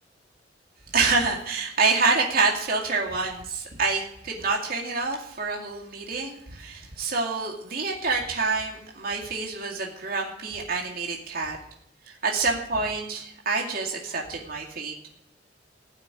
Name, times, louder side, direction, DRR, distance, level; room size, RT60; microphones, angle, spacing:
voice 1, 0.9-11.6 12.1-14.9, right 4 dB, 55° right, -2 dB, 2.3 m, -27 dB
16.0 x 5.9 x 9.7 m, 0.73 s
head